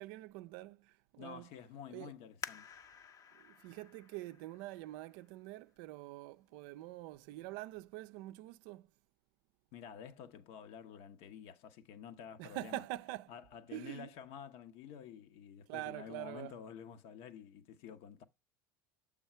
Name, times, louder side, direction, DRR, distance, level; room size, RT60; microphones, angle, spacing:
voice 1, 0.0-1.5 1.9-2.1 3.4-8.9 12.4-13.3 13.7-14.1 15.7-16.5, right 17 dB, 65° right, 0.4 m, -45 dB
voice 2, 1.2-2.7 9.7-12.8 13.3-18.2, left 8 dB, 60° left, 0.9 m, -50 dB
sound 1, 2.4-5.8 6.4-6.5 7.1-7.5 7.9-8.0, left 6 dB, 30° left, 0.7 m, -51 dB
7.2 x 3.7 x 4.3 m
hypercardioid pair, 80°, 11 cm